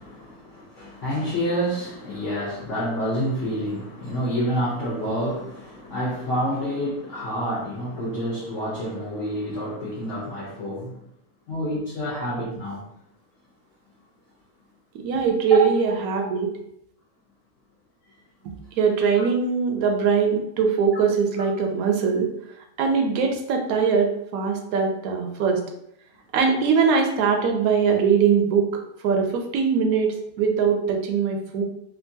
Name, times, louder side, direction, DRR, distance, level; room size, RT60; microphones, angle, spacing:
voice 1, 0.0-11.0 11.5-12.8 15.5-15.7 19.1-19.2, equal, 60° left, -7 dB, 1.0 m, -28 dB
voice 2, 14.9-16.5 18.8-22.3 22.8-25.6 26.3-28.7 29.0-31.6, right 6 dB, 75° right, 3 dB, 1.0 m, -21 dB
2.9 x 2.4 x 2.6 m, 0.77 s
omnidirectional pair, 1.6 m